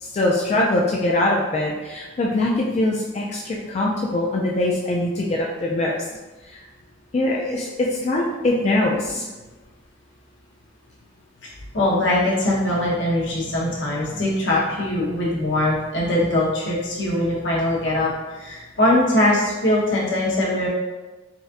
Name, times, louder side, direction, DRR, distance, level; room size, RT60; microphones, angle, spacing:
voice 1, 0.0-6.1 6.4-6.6 7.1-9.3, left 1 dB, 35° left, -3 dB, 0.3 m, -22 dB
voice 2, 11.7-20.7, left 1 dB, 75° left, -5 dB, 1.0 m, -21 dB
4.0 x 2.5 x 2.5 m, 1.2 s
head